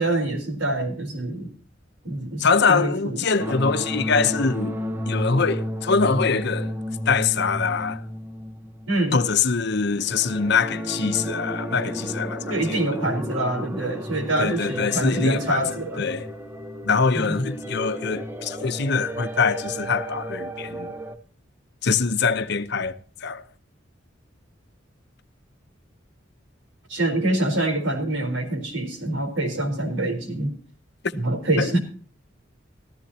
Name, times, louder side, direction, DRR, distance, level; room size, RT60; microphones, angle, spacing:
voice 1, 0.0-1.5 2.0-3.2 8.9-9.2 12.5-16.0 17.1-17.4 26.9-30.5 31.1-31.8, right 1 dB, 80° right, 4.2 m, -25 dB
voice 2, 2.4-4.8 5.1-6.7 7.1-8.0 9.1-12.8 14.4-15.6 16.0-16.3 16.8-20.9 21.8-23.0 23.2-23.4 31.0-31.2 31.6-31.8, left 5 dB, 60° left, 0.9 m, -23 dB
sound 1, 3.4-9.3 9.9-21.2, equal, 10° right, 1.0 m, -32 dB
15.0 x 14.5 x 2.9 m
head